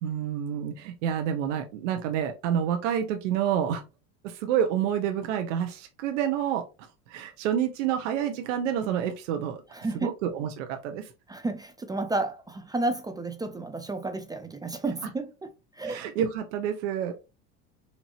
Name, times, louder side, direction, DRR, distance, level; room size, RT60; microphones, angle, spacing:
voice 1, 0.0-3.8 4.2-6.6 7.1-9.6 9.9-11.1 15.8-17.1, right 9 dB, 80° right, 0.8 m, -28 dB
voice 2, 9.7-10.1 11.3-16.0, right 2 dB, 10° right, 0.3 m, -32 dB
4.4 x 2.7 x 2.8 m
supercardioid pair, 105°, 37 cm